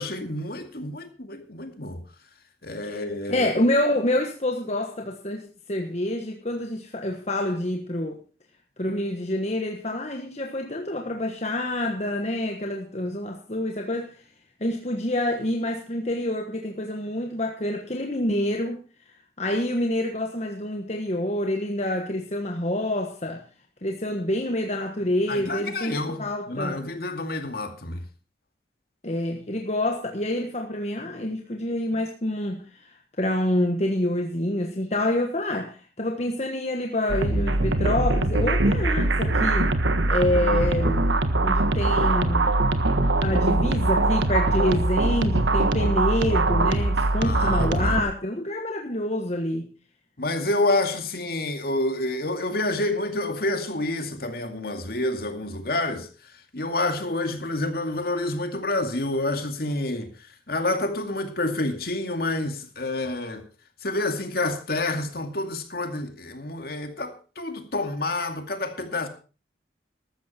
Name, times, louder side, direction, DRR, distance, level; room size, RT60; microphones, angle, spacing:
voice 1, 0.0-2.0 2.6-3.5 25.3-28.0 47.2-48.0 50.2-56.1 56.5-60.1 60.5-63.4 63.8-69.1, left 2 dB, 55° left, 2.3 m, -28 dB
voice 2, 3.3-8.2 8.8-14.2 14.6-18.8 19.4-23.4 23.8-26.8 29.0-39.7 40.1-41.1 41.4-42.6 43.2-49.7, left 1 dB, 35° left, 1.4 m, -27 dB
sound 1, 37.1-48.0, right 2 dB, 85° right, 1.5 m, -22 dB
14.5 x 12.5 x 4.4 m
head